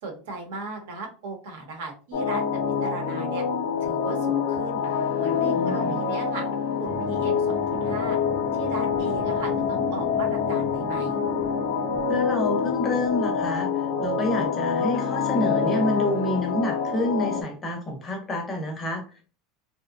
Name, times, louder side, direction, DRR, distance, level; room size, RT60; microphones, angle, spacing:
voice 1, 0.0-3.4 3.8-4.8 5.2-6.5 6.8-8.2 8.5-11.2, right 3 dB, 75° right, 2 dB, 0.9 m, -37 dB
sound 1, 2.1-17.4, left 6 dB, 70° left, 0.4 m, -26 dB
voice 2, 5.5-6.0 12.1-19.2, left 1 dB, 15° left, 3 dB, 0.6 m, -28 dB
sound 2, 6.8-14.4, right 2 dB, 55° right, 0.6 m, -38 dB
2.7 x 2.1 x 2.5 m, 0.36 s
supercardioid pair, 175°, 0 cm